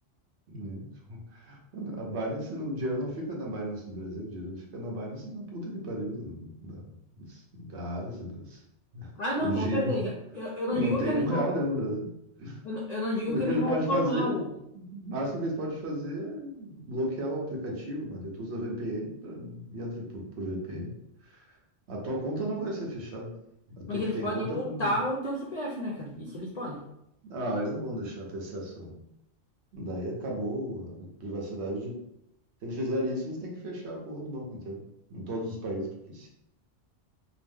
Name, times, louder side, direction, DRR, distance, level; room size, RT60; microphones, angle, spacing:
voice 1, 0.5-8.6 8.9-9.1 9.4-10.0 10.7-12.1 12.4-12.6 13.3-14.4 14.7-20.9 21.2-21.4 21.9-23.3 23.7-25.0 27.3-29.0 29.7-32.0 32.6-34.8 35.1-36.3, equal, 65° right, -1 dB, 1.0 m, -34 dB
voice 2, 9.2-11.4 12.6-14.5 23.9-26.8, left 1 dB, 60° left, -3 dB, 0.4 m, -30 dB
2.9 x 2.1 x 3.4 m, 0.80 s
omnidirectional pair, 1.2 m